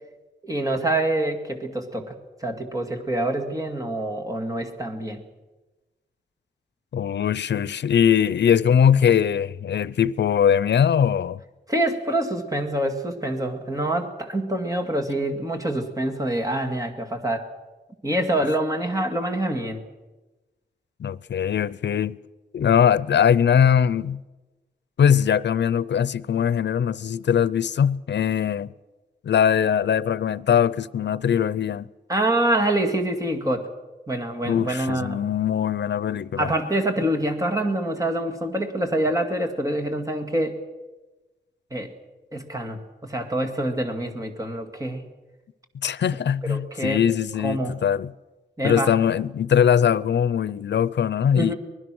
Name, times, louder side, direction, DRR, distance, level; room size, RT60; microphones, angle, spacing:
voice 1, 0.4-2.2 2.4-5.2 11.7-17.5 18.0-19.8 32.1-33.7 34.1-35.2 36.4-40.6 41.7-41.9 42.3-45.0 46.4-47.0 47.4-47.7 48.6-49.0 51.3-51.6, right 1 dB, 20° right, 2.1 m, -26 dB
voice 2, 6.9-11.4 21.0-22.2 22.5-24.2 25.0-28.7 29.2-31.9 34.5-36.5 45.7-48.1 48.6-51.5, left 8 dB, 85° left, 0.6 m, -21 dB
24.5 x 20.0 x 6.2 m
wide cardioid pair, 165°, 18 cm